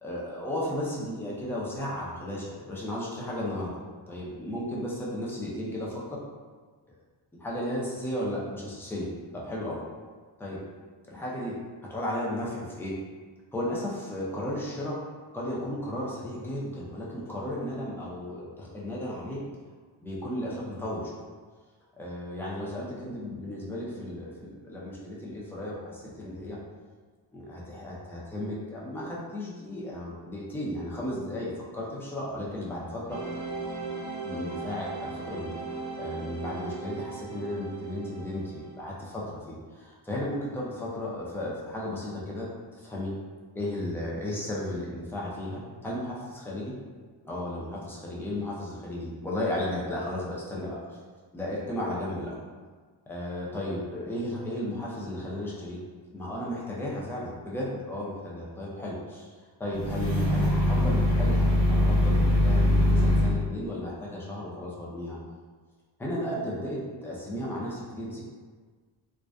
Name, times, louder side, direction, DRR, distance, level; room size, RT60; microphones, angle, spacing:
voice 1, 0.0-3.7 4.1-6.2 7.4-9.1 9.3-9.8 10.4-10.6 11.0-11.6 11.9-12.9 13.5-14.9 15.3-19.4 20.0-21.2 22.0-26.6 27.3-33.2 34.2-43.1 43.5-46.7 47.2-51.0 51.3-52.4 53.1-55.8 56.1-59.3 59.6-65.2 66.0-68.2, left 1 dB, 5° left, -5 dB, 0.4 m, -34 dB
sound 1, 33.1-38.8, right 4 dB, 60° right, 0.8 m, -38 dB
sound 2, 59.7-63.4, left 1 dB, 50° left, 0.9 m, -22 dB
2.5 x 2.2 x 2.2 m, 1.5 s
cardioid pair, 105°, 43 cm